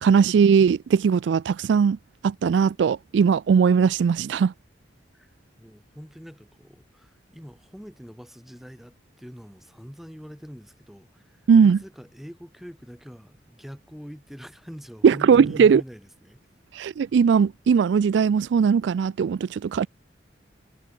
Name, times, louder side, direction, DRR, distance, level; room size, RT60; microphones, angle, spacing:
voice 1, 0.0-2.0 2.2-4.5 11.5-11.8 15.0-15.8 16.7-19.9, right 6 dB, 75° right, 0.3 m, -19 dB
voice 2, 5.6-16.4, equal, ahead, 5.7 m, -43 dB
head